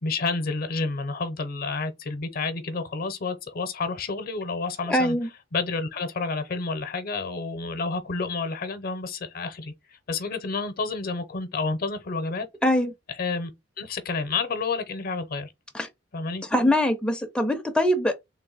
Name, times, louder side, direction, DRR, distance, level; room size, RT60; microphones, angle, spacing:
voice 1, 0.0-5.2 5.5-9.7 10.1-12.5 13.2-13.5 13.8-15.5 16.1-16.4, left 4 dB, 50° left, 0.7 m, -30 dB
voice 2, 4.9-5.3 12.6-12.9 15.7-15.9 16.5-18.1, left 1 dB, 5° left, 0.5 m, -22 dB
3.3 x 2.6 x 3.8 m
head